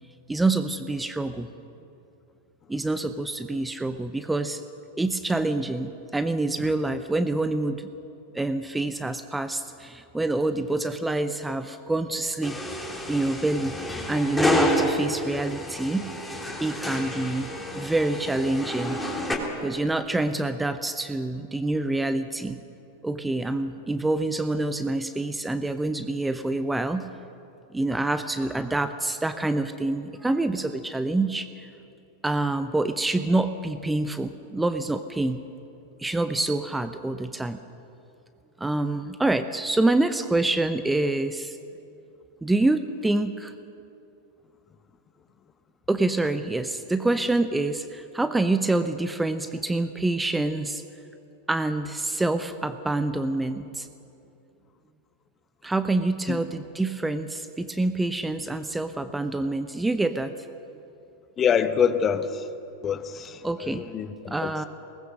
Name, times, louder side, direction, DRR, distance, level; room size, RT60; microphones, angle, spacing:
voice 1, 0.3-1.5 2.7-4.6 5.0-7.9 8.3-13.8 14.1-16.1 16.6-19.0 19.6-22.6 23.0-27.1 27.7-31.7 32.2-35.4 36.0-37.6 38.6-41.6 42.4-43.5 45.9-50.8 51.5-53.9 55.6-60.3 63.4-63.8 64.3-64.6, right 2 dB, 5° right, 10 dB, 0.7 m, -26 dB
sound 1, 12.4-19.3, left 1 dB, 10° left, 3.3 m, -29 dB
voice 2, 61.4-62.5 62.8-64.7, left 7 dB, 25° left, 12 dB, 1.0 m, -26 dB
22.0 x 19.0 x 6.4 m, 2.6 s
figure-of-eight pair, 90°, 0 cm